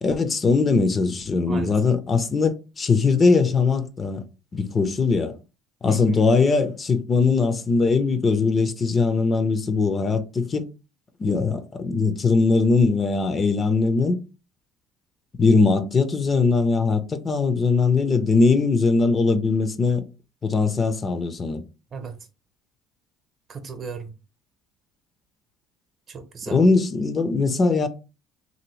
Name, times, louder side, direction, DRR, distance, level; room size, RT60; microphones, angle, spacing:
voice 1, 0.0-4.2 4.5-5.4 5.8-10.7 11.2-14.2 15.3-20.0 20.4-21.6 26.5-27.9, left 4 dB, 30° left, 0.4 m, -21 dB
voice 2, 5.9-6.2 21.9-22.2 23.5-24.1 26.1-26.6, right 5 dB, 45° right, 0.7 m, -35 dB
2.6 x 2.6 x 3.0 m
supercardioid pair, 90°, 0 cm